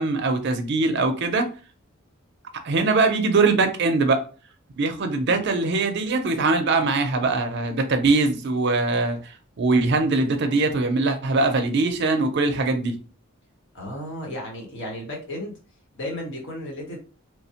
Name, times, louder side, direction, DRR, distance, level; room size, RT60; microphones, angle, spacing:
voice 1, 0.0-1.5 2.6-4.2 4.8-12.9, right 3 dB, 50° right, 0.5 m, -22 dB
voice 2, 13.7-15.5 15.9-17.0, left 1 dB, 60° left, 1.1 m, -33 dB
3.2 x 2.1 x 2.8 m
head